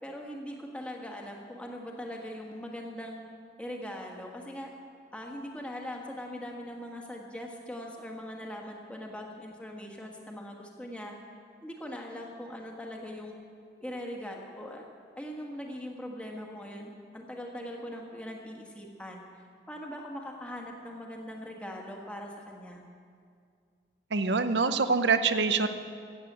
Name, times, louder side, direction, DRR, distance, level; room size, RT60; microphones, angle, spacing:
voice 1, 0.0-3.3 3.6-4.7 5.1-11.1 11.6-13.4 13.8-14.9 15.2-19.2 19.7-22.8, equal, 5° left, 0 dB, 1.5 m, -41 dB
voice 2, 24.1-25.7, right 4 dB, 80° right, 10 dB, 0.8 m, -25 dB
15.5 x 8.1 x 8.0 m, 2.2 s
head